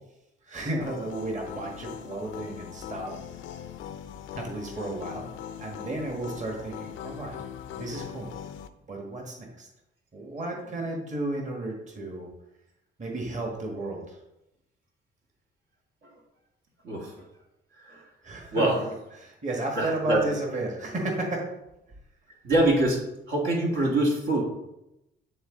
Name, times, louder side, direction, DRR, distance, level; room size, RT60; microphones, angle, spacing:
voice 1, 0.4-3.1 4.4-5.2 5.6-7.4 7.7-8.3 8.9-9.7 10.1-12.3 13.0-14.2 18.2-21.4, right 2 dB, 35° right, 0 dB, 1.6 m, -33 dB
sound 1, 0.8-8.7, left 9 dB, 80° left, 0.5 m, -41 dB
voice 2, 16.8-17.2 17.8-18.0 18.5-18.8 19.8-20.2 22.4-23.0 23.3-24.5, right 1 dB, 75° right, -2 dB, 1.9 m, -24 dB
9.0 x 3.8 x 3.8 m, 0.89 s
cardioid pair, 90°, 20 cm